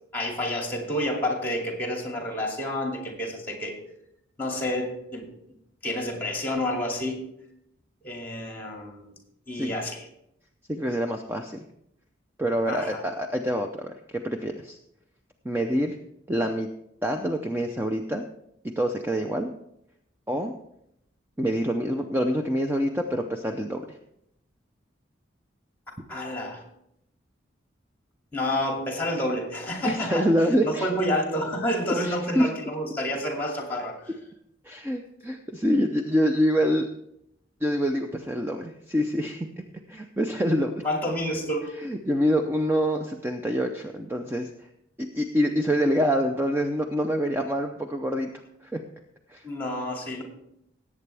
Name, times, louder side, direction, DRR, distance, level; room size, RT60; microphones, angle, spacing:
voice 1, 0.1-3.8 4.4-5.2 5.8-7.3 8.0-9.2 9.5-10.1 12.7-13.0 26.1-26.6 28.3-30.3 30.6-34.0 40.8-41.7 49.4-50.2, left 1 dB, 10° left, 1 dB, 2.5 m, -29 dB
voice 2, 10.7-11.6 12.4-14.8 15.4-16.0 16.3-16.7 17.0-18.2 18.6-19.5 20.3-20.5 21.4-24.0 29.8-30.9 32.0-32.5 34.6-36.9 37.6-39.5 39.9-40.8 41.8-44.7 45.0-48.3 48.6-48.8 49.3-49.4, equal, 10° right, 4 dB, 0.6 m, -26 dB
18.0 x 8.4 x 3.4 m, 0.78 s
head